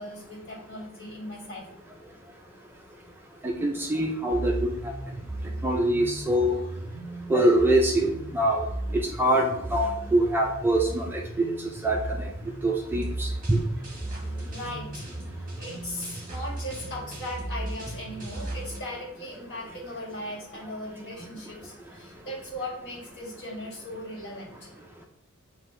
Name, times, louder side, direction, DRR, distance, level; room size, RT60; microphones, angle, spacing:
voice 1, 0.0-1.7 14.5-15.0 15.6-24.7, left 1 dB, 55° left, -4 dB, 1.7 m, -38 dB
voice 2, 3.4-4.9 5.6-6.5 7.3-8.6 8.9-11.5 11.8-12.3 12.6-13.6, right 1 dB, 10° right, 0 dB, 0.4 m, -24 dB
sound 1, 4.3-18.8, right 1 dB, 40° right, 1.2 m, -36 dB
7.0 x 2.7 x 2.6 m, 0.80 s
head